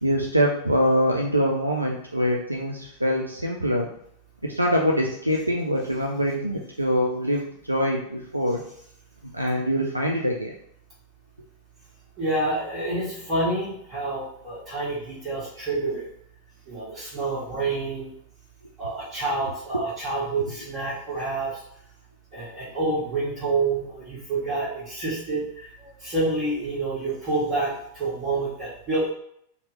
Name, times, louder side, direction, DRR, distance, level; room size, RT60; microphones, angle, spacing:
voice 1, 0.0-3.9 4.4-8.6 9.2-10.5, equal, 85° right, -1 dB, 0.3 m, -24 dB
voice 2, 12.2-16.1 16.7-18.1 18.8-21.6 22.3-25.4 25.8-29.1, right 2 dB, 30° right, -10 dB, 1.4 m, -28 dB
2.8 x 2.2 x 3.0 m, 0.69 s
figure-of-eight pair, 90°, 0 cm